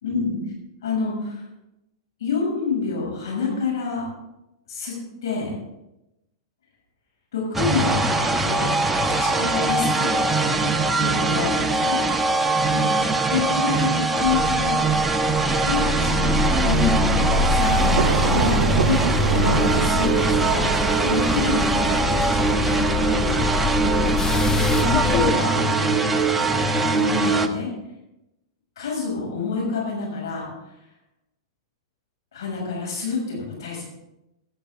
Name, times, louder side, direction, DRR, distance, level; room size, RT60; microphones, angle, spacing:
voice 1, 0.0-0.4 0.8-1.4 2.2-4.0 4.7-4.9 5.2-5.5 7.3-8.7 9.0-12.0 12.7-14.9 15.2-15.3 15.6-18.6 18.8-19.0 19.3-20.7 21.0-23.4 23.8-24.0 24.7-26.3 26.9-27.7 28.8-30.5 32.3-33.8, left 5 dB, 75° left, -3 dB, 6.0 m, -28 dB
sound 1, 7.5-27.5, right 3 dB, 10° right, 1.0 m, -22 dB
sound 2, 14.2-25.3, left 4 dB, 20° left, 0.4 m, -26 dB
sound 3, 17.1-22.6, right 10 dB, 70° right, 0.3 m, -29 dB
17.0 x 10.5 x 3.6 m, 0.92 s
hypercardioid pair, 105°, 2 cm